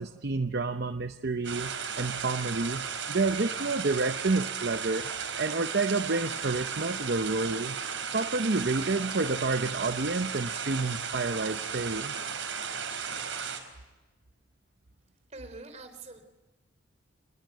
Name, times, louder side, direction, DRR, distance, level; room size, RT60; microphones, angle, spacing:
voice 1, 0.0-5.0 5.4-7.8 8.1-12.2, right 3 dB, 55° right, 8 dB, 0.8 m, -29 dB
sound 1, 1.4-13.6, right 6 dB, 80° right, 4.8 m, -35 dB
voice 2, 15.3-16.2, right 3 dB, 35° right, 8 dB, 3.8 m, -44 dB
26.5 x 21.0 x 9.3 m, 1.1 s
head